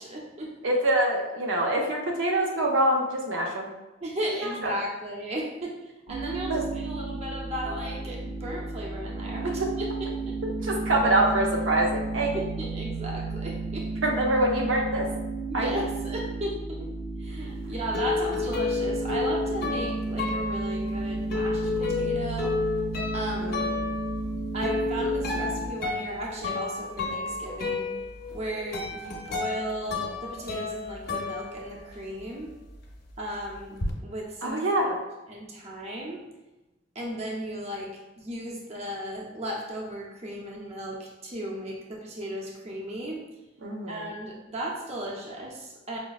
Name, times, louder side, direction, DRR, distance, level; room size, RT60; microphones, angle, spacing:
voice 1, 0.0-0.5 4.0-9.9 10.3-10.4 12.3-13.9 15.5-16.9 17.2-22.6 23.1-23.7 24.5-27.9 28.3-32.5 33.2-33.8 34.0-34.6 35.3-36.2 36.9-43.2 43.9-46.0, right 1 dB, 35° right, -2 dB, 0.5 m, -35 dB
voice 2, 0.6-3.7 4.4-4.7 6.5-6.6 10.6-12.3 14.0-15.1 15.5-15.8 23.4-24.0 34.4-35.0 43.6-44.1, right 1 dB, 85° right, 0 dB, 0.6 m, -25 dB
sound 1, 6.1-25.7, right 3 dB, 70° right, 1.0 m, -33 dB
sound 2, 17.4-32.2 32.5-33.9, left 4 dB, 55° left, 0.6 m, -31 dB
5.0 x 2.1 x 2.3 m, 1.0 s
head